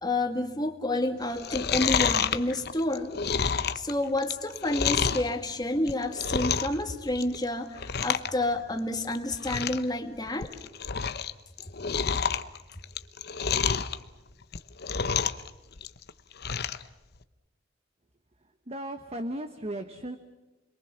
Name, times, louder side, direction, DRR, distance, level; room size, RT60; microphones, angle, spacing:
voice 1, 0.0-3.1 3.7-10.5, left 1 dB, 20° left, 5 dB, 2.1 m, -29 dB
Chewing mastication, 1.3-5.3 5.7-6.8 7.1-7.4 7.8-8.3 8.6-8.7 9.1-9.2 9.4-9.8 10.3-11.3 11.6-13.9 14.4-15.5 15.8-16.8 17.2-17.3, left 6 dB, 55° left, 1.0 m, -28 dB
voice 2, 18.7-20.2, right 1 dB, 35° right, 8 dB, 1.2 m, -35 dB
29.0 x 22.5 x 7.2 m, 1.1 s
head